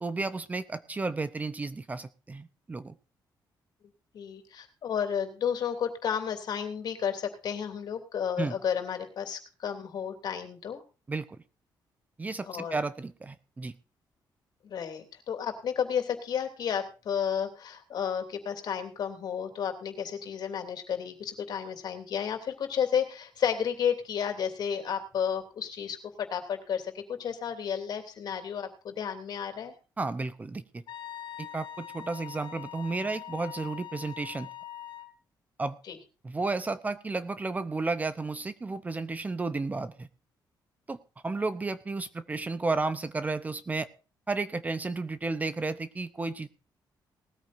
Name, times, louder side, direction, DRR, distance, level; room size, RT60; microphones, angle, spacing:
voice 1, 0.0-2.9 8.4-8.5 11.1-11.4 12.2-13.7 30.0-30.8 31.4-34.5 35.6-35.8 36.2-40.1 40.9-41.0 41.2-43.9 44.3-46.5, right 3 dB, 20° right, 13 dB, 0.7 m, -32 dB
voice 2, 4.1-10.8 12.4-12.8 14.6-29.7 35.9-36.0, left 8 dB, 60° left, 6 dB, 3.0 m, -32 dB
Wind instrument woodwind instrument, 30.9-35.1, left 11 dB, 85° left, 1.9 m, -43 dB
19.5 x 14.0 x 2.7 m, 0.34 s
cardioid pair, 140°, 8 cm